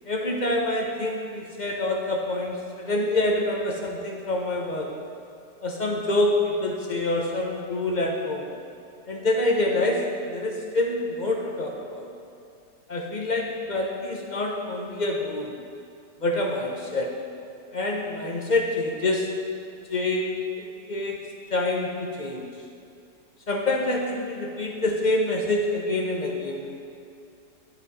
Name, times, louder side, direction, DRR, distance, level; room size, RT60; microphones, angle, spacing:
voice 1, 0.1-4.9 5.6-8.5 9.1-12.1 12.9-15.6 16.2-17.1 17.7-19.3 19.9-20.3 20.6-21.2 21.5-22.5 23.5-26.7, left 2 dB, 40° left, -1 dB, 0.6 m, -26 dB
10.0 x 7.6 x 4.1 m, 2.5 s
omnidirectional pair, 1.8 m